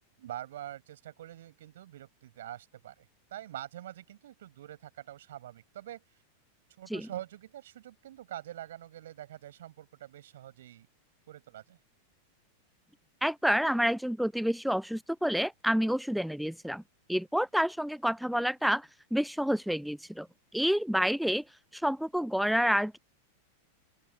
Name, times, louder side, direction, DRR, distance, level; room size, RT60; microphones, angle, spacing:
voice 1, 0.2-6.0 6.8-10.9 11.3-11.8, right 12 dB, 60° right, 7.0 m, -45 dB
voice 2, 13.2-16.8 17.1-20.3 20.5-21.4 21.7-23.0, equal, ahead, 0.3 m, -29 dB
open air
figure-of-eight pair, 90°, 0 cm